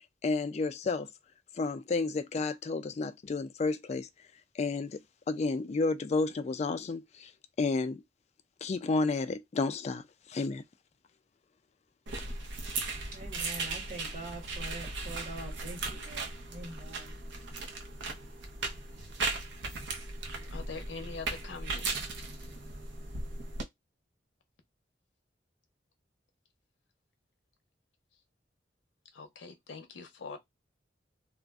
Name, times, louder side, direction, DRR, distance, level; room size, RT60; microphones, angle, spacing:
voice 1, 0.2-1.1 1.5-4.1 4.5-5.0 5.3-7.3 7.6-8.0 8.6-10.0 10.3-10.6, left 3 dB, 35° left, 0.3 m, -31 dB
sound 1, 12.1-23.6, right 3 dB, 85° right, 0.7 m, -37 dB
voice 2, 13.1-17.1, right 2 dB, 50° right, 1.2 m, -44 dB
voice 3, 20.5-22.4 29.1-30.4, left 4 dB, 90° left, 0.6 m, -44 dB
2.4 x 2.1 x 3.5 m
head